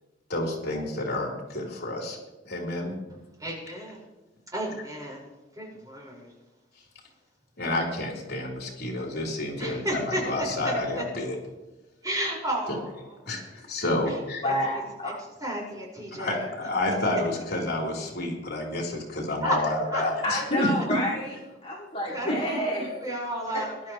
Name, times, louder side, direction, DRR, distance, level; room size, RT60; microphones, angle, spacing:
voice 1, 0.3-2.2 2.4-2.9 7.6-11.4 12.7-12.8 13.3-14.4 16.2-21.0 22.3-22.6, left 1 dB, 60° left, -1 dB, 3.7 m, -29 dB
voice 2, 3.4-4.0 4.5-5.3 5.5-6.3 9.6-11.1 12.0-13.0 14.1-14.2 14.4-14.5 15.0-15.1 15.4-16.5 19.4-19.6 19.9-20.0 22.1-23.9, right 1 dB, 20° right, -3 dB, 5.1 m, -32 dB
voice 3, 14.4-15.1 20.2-21.3 21.6-23.1 23.5-23.6, equal, 35° left, -4 dB, 2.5 m, -29 dB
22.0 x 12.0 x 3.1 m, 1.1 s
head